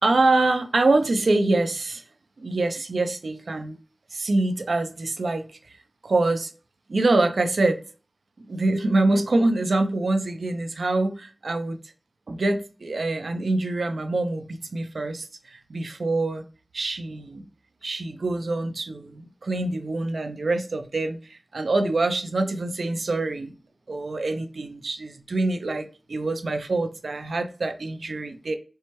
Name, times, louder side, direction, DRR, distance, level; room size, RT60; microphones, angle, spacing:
voice 1, 0.0-2.0 2.4-3.8 4.1-6.5 6.9-7.8 8.4-11.8 12.3-16.4 16.7-17.5 17.8-23.5 23.9-28.6, right 2 dB, 90° right, 0.5 m, -25 dB
4.6 x 2.2 x 2.9 m
wide cardioid pair, 50°, 0 cm